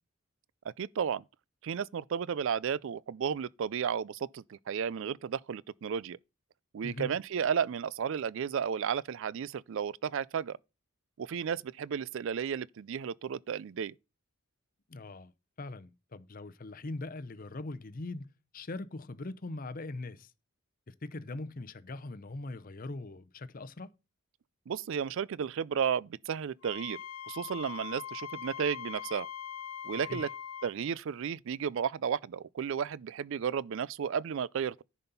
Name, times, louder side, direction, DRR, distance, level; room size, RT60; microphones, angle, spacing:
voice 1, 0.8-1.2 1.6-6.2 6.7-10.6 11.2-13.9 24.7-27.0 27.3-29.3 29.8-30.3 30.6-34.8, right 7 dB, 55° right, 0.3 m, -33 dB
voice 2, 6.8-7.1 14.9-15.3 15.6-18.3 18.5-20.3 20.9-23.9 30.1-30.3, left 2 dB, 40° left, 0.6 m, -41 dB
Wind instrument woodwind instrument, 26.6-30.7, left 9 dB, 75° left, 1.0 m, -42 dB
10.5 x 4.2 x 5.4 m
head